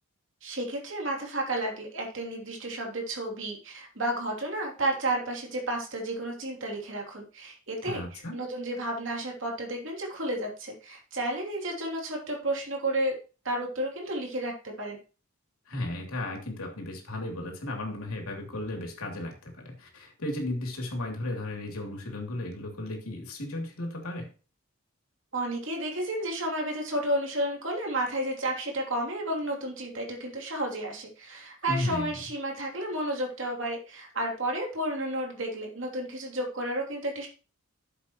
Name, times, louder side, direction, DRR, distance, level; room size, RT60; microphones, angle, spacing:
voice 1, 0.4-13.2 13.4-15.0 25.3-37.3, right 1 dB, 60° right, 0 dB, 3.1 m, -32 dB
voice 2, 7.8-8.4 15.7-24.3 31.7-32.1, left 1 dB, 85° left, 2 dB, 3.0 m, -35 dB
11.5 x 7.6 x 3.1 m, 0.35 s
head